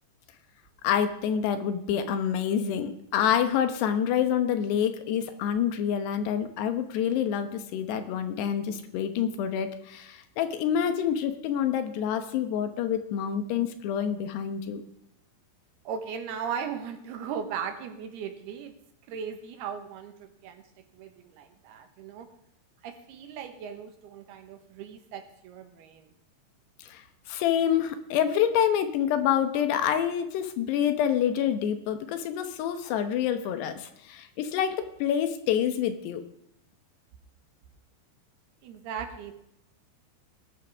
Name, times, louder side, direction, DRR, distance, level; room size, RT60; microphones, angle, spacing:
voice 1, 0.8-14.8 26.8-36.2, left 9 dB, 80° left, 8 dB, 3.1 m, -27 dB
voice 2, 15.8-18.7 19.1-20.6 20.9-22.3 22.8-26.1 38.6-39.3, right 7 dB, 75° right, 7 dB, 3.0 m, -37 dB
19.5 x 12.0 x 3.5 m, 0.75 s
omnidirectional pair, 4.9 m